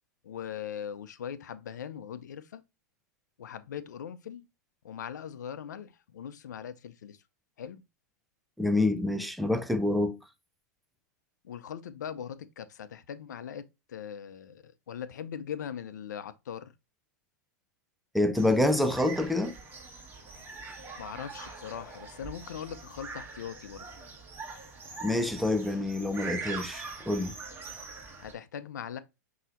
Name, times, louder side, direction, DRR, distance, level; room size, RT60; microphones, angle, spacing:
voice 1, 0.2-2.6 3.4-4.5 4.8-7.2 7.6-7.8 11.4-16.7 21.0-23.9 28.2-29.0, left 8 dB, 75° left, 0.5 m, -40 dB
voice 2, 8.6-10.2 18.1-19.5 25.0-27.3, left 1 dB, ahead, 0.4 m, -27 dB
sound 1, 18.4-28.3, right 4 dB, 20° right, 1.4 m, -43 dB
5.6 x 2.8 x 2.5 m
hypercardioid pair, 110°, 10 cm